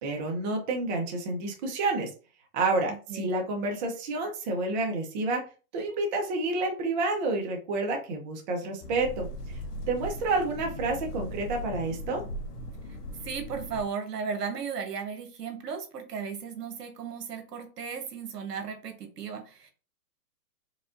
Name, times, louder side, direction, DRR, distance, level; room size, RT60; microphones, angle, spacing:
voice 1, 0.0-2.1 2.5-5.4 5.7-9.6 9.9-12.2, right 2 dB, 30° right, 2 dB, 0.7 m, -29 dB
sound 1, 8.8-13.8, equal, 75° left, 1.1 m, -38 dB
voice 2, 13.2-19.7, right 6 dB, 80° right, 6 dB, 1.2 m, -35 dB
4.8 x 2.3 x 2.5 m, 0.35 s
hypercardioid pair, 150°, 47 cm